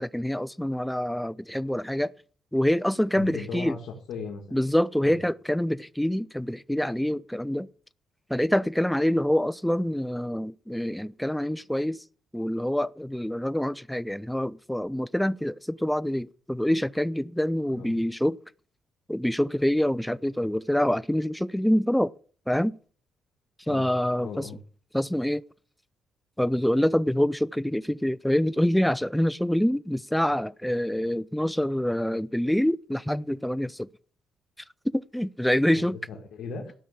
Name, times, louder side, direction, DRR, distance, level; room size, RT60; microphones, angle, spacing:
voice 1, 0.0-2.1 2.5-3.8 4.5-7.7 8.3-12.0 12.3-18.4 19.1-22.1 22.5-22.8 23.7-24.5 24.9-25.4 26.4-33.9 34.9-36.0, equal, 5° left, 0.5 m, -26 dB
voice 2, 3.1-4.6 5.0-5.2 17.7-17.9 23.7-23.8 24.2-24.6 35.7-36.7, left 4 dB, 75° left, 2.3 m, -38 dB
14.0 x 6.2 x 7.0 m
cardioid pair, 90°, 0 cm